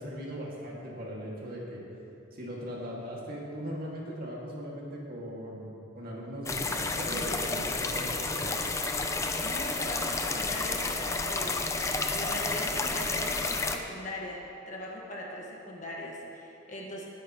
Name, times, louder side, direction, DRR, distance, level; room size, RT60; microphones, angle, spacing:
voice 1, 0.0-1.8 2.3-8.6, equal, 45° right, -4 dB, 2.2 m, -39 dB
sound 1, 6.5-13.8, left 3 dB, 15° left, 0.5 m, -31 dB
voice 2, 9.4-11.9 12.1-17.1, left 1 dB, 35° left, -3 dB, 1.6 m, -40 dB
19.5 x 10.0 x 3.1 m, 2.9 s
head